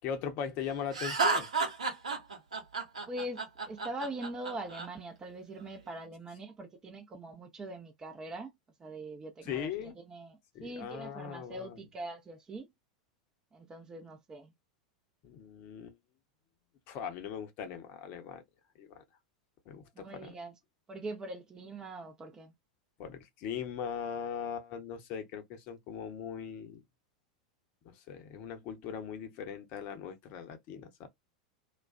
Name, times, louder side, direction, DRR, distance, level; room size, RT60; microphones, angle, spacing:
voice 1, 0.0-1.5 9.4-10.0 10.5-11.8 15.2-16.0 16.9-18.4 18.7-19.0 19.7-20.4 23.0-26.8 27.8-31.1, left 8 dB, 40° left, 0.7 m, -40 dB
Laughter, 0.9-4.9, right 4 dB, 75° right, 0.9 m, -31 dB
voice 2, 3.1-8.5 8.8-12.7 13.5-14.5 20.0-20.5 20.9-22.5, right 1 dB, 20° right, 0.6 m, -42 dB
2.3 x 2.2 x 2.4 m
figure-of-eight pair, 90°, 4 cm